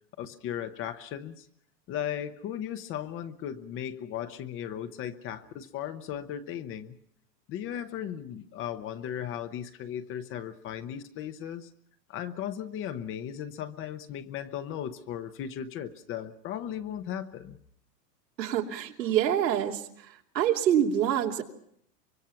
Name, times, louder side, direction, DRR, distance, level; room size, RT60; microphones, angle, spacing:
voice 1, 0.2-1.5 1.9-7.0 7.5-11.7 12.1-17.6, left 10 dB, 25° left, 11 dB, 0.9 m, -36 dB
voice 2, 18.4-19.8 20.3-21.4, right 10 dB, 90° right, 1 dB, 3.1 m, -26 dB
24.5 x 23.5 x 5.8 m, 0.70 s
supercardioid pair, 150°, 49 cm